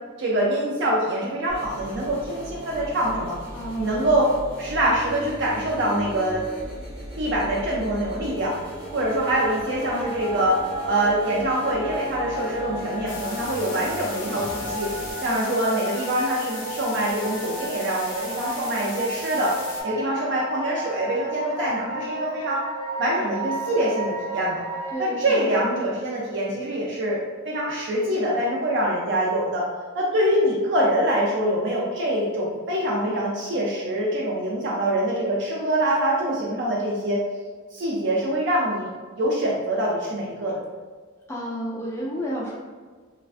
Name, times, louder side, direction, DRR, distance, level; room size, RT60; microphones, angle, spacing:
voice 1, 0.2-3.4 3.8-4.3 4.6-6.4 7.2-8.5 8.9-14.9 15.2-19.5 19.8-22.6 23.0-24.6 25.0-29.7 29.9-37.2 37.7-38.9 39.2-40.6, right 1 dB, 55° right, -4 dB, 0.4 m, -24 dB
sound 1, 1.5-15.1, equal, 10° right, 0.8 m, -38 dB
voice 2, 3.5-4.1 24.9-25.5 41.3-42.6, equal, 10° left, -5 dB, 0.4 m, -31 dB
sound 2, 8.4-24.9, right 1 dB, 35° right, 1.4 m, -33 dB
sound 3, 13.1-19.8, left 2 dB, 40° left, 0.7 m, -38 dB
3.2 x 2.3 x 2.4 m, 1.5 s
head